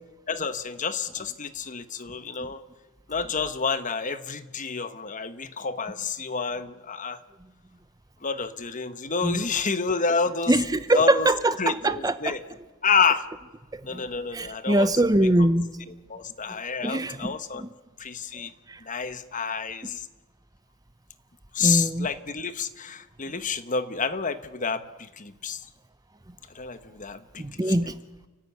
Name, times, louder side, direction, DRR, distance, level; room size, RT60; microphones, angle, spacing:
voice 1, 0.3-2.6 3.1-7.2 8.2-10.5 10.9-11.3 11.6-12.4 12.8-13.3 13.8-14.9 15.2-15.3 16.1-17.6 18.0-18.5 18.9-20.0 21.5-25.6 26.5-27.6, left 5 dB, 35° left, 12 dB, 1.1 m, -29 dB
voice 2, 10.5-12.3 13.7-14.0 14.3-15.7 16.8-17.3 17.6-17.7 18.7-18.8 21.6-22.1 27.4-28.0, right 1 dB, 15° right, 13 dB, 0.7 m, -23 dB
29.5 x 14.0 x 9.5 m, 1.3 s
head